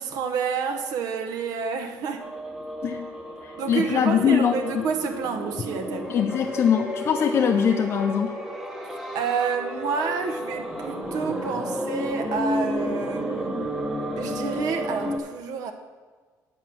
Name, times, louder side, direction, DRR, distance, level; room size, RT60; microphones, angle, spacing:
voice 1, 0.0-2.3 3.6-6.1 9.1-13.8 14.2-15.7, right 5 dB, 60° right, 4 dB, 0.9 m, -29 dB
sound 1, 2.2-15.2, equal, 5° right, 0.9 m, -32 dB
voice 2, 3.4-4.9 6.1-8.4, left 8 dB, 35° left, 4 dB, 0.4 m, -22 dB
8.8 x 7.4 x 6.0 m, 1.5 s
cardioid pair, 180°, 7 cm